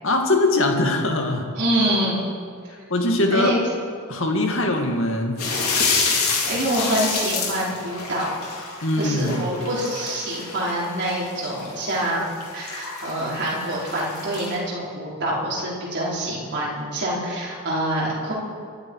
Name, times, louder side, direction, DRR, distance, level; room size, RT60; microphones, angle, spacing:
voice 1, 0.0-1.4 2.9-3.5 4.1-5.4 8.8-9.5, left 2 dB, 60° left, 3 dB, 2.2 m, -21 dB
voice 2, 1.3-2.2 3.3-3.6 5.9-8.3 9.0-12.3 12.5-18.3, right 1 dB, 50° right, -6 dB, 4.6 m, -26 dB
sound 1, 5.4-14.5, left 4 dB, 80° left, 4.2 m, -27 dB
25.0 x 12.0 x 4.9 m, 2.2 s
head